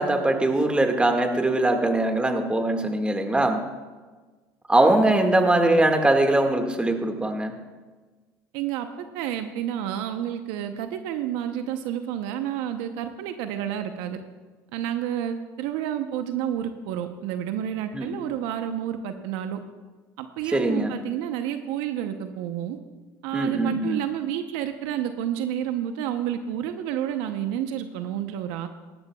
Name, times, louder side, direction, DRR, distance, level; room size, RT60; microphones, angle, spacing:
voice 1, 0.0-3.6 4.7-7.5 17.9-18.1 20.5-20.9 23.3-24.0, right 2 dB, 10° right, 4 dB, 1.9 m, -21 dB
voice 2, 8.5-14.2 14.7-19.6 20.2-22.8 23.2-28.7, right 10 dB, 75° right, 8 dB, 0.8 m, -30 dB
17.5 x 13.5 x 2.4 m, 1.3 s
supercardioid pair, 85°, 8 cm